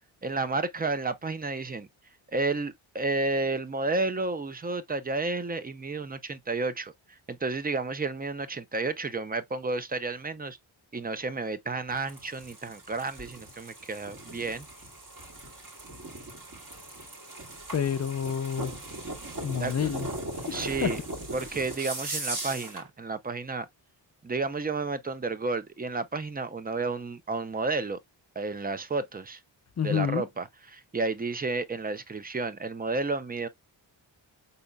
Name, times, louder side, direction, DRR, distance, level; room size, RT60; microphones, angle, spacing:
voice 1, 0.2-1.9 2.3-10.6 10.9-14.7 19.6-19.9 20.5-21.0 21.3-23.7 24.2-28.0 28.4-29.4 29.8-33.5, right 3 dB, 20° right, 0.5 m, -31 dB
sound 1, 11.9-22.9, right 2 dB, 45° right, 2.4 m, -39 dB
voice 2, 17.7-18.7 19.4-20.1 20.3-20.9 29.8-30.2, left 7 dB, 35° left, 0.5 m, -29 dB
5.3 x 4.0 x 2.2 m
wide cardioid pair, 150°, 45 cm